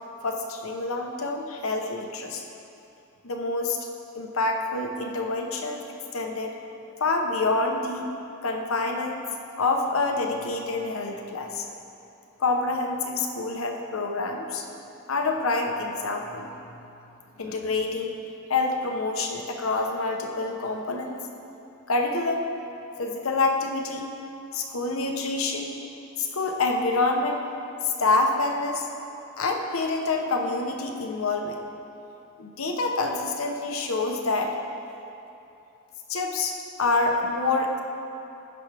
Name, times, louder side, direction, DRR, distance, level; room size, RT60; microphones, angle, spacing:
voice 1, 0.2-2.4 3.2-3.8 4.1-5.8 6.1-6.6 7.0-8.1 8.4-9.2 9.6-11.6 12.4-14.7 15.1-16.5 17.4-18.1 18.5-21.2 21.9-22.5 23.0-24.1 24.5-25.7 26.2-27.4 27.8-28.9 29.4-31.6 32.4-34.5 36.1-37.8, left 3 dB, 90° left, 3 dB, 0.9 m, -27 dB
15.5 x 6.0 x 3.4 m, 2.9 s
head